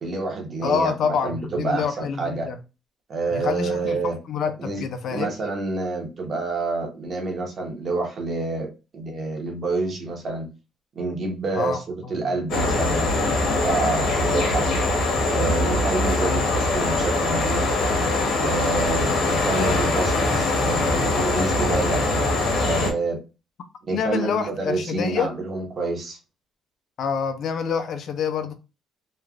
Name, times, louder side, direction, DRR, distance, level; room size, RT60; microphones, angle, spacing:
voice 1, 0.0-2.5 3.1-4.2 4.6-10.5 11.0-13.4 13.6-14.7 15.3-17.7 18.4-22.0 22.6-23.2 23.9-26.2, right 3 dB, 35° right, 0.9 m, -28 dB
voice 2, 0.6-2.6 3.3-5.3 11.5-12.3 16.2-16.6 23.9-25.3 27.0-28.5, left 6 dB, 50° left, 0.4 m, -27 dB
sound 1, 12.5-22.9, left 2 dB, 65° left, 0.9 m, -22 dB
3.1 x 2.3 x 2.4 m
cardioid pair, 160°, 0 cm